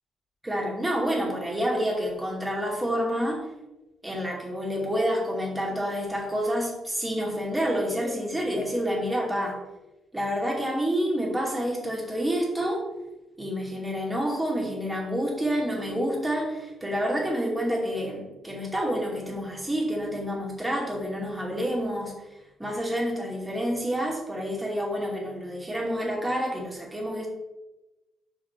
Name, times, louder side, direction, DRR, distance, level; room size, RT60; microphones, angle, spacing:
voice 1, 0.4-3.5 4.0-9.6 10.1-12.8 13.4-22.3 22.6-27.3, equal, 10° right, -2 dB, 2.4 m, -28 dB
5.8 x 5.2 x 4.8 m, 1.0 s
cardioid pair, 90°, 0 cm